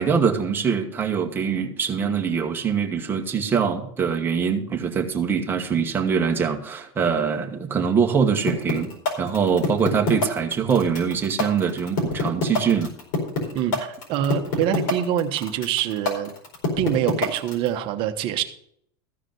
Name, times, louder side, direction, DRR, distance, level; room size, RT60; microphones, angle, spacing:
voice 1, 0.0-8.9 9.2-12.9, right 6 dB, 15° right, 3 dB, 1.4 m, -23 dB
sound 1, 8.5-17.7, left 3 dB, 60° left, 4.5 m, -25 dB
voice 2, 13.5-16.3 16.8-18.4, right 10 dB, 45° right, 8 dB, 1.1 m, -25 dB
14.5 x 4.9 x 7.8 m, 0.68 s
supercardioid pair, 145°, 13 cm